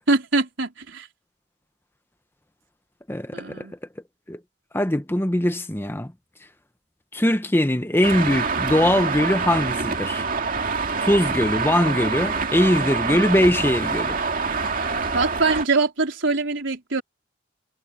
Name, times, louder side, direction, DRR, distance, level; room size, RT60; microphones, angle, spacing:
voice 1, 0.1-1.1 3.3-3.7 15.1-17.0, right 3 dB, 75° right, 4.0 m, -23 dB
voice 2, 3.1-3.7 4.3-4.4 4.7-6.1 7.1-10.3 11.0-14.2, left 1 dB, 10° left, 1.0 m, -21 dB
Traffic noise roadway noise, 8.0-15.6, right 4 dB, 45° right, 2.2 m, -26 dB
head